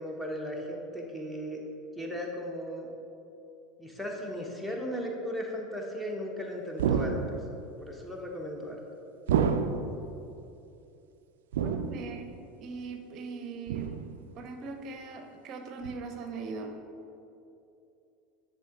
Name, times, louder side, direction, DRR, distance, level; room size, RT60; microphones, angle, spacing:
voice 1, 0.0-1.6 2.0-2.9 3.8-7.2 7.8-8.8, equal, 5° left, 0 dB, 1.1 m, -36 dB
sound 1, 6.8-7.6 9.3-10.1 11.5-12.3 13.7-14.3 15.8-15.9, right 7 dB, 65° right, 0.3 m, -29 dB
voice 2, 11.6-12.3 12.6-14.0 14.4-16.8, right 4 dB, 45° right, 6 dB, 0.7 m, -40 dB
9.9 x 3.6 x 3.9 m, 2.7 s
figure-of-eight pair, 75°, 0 cm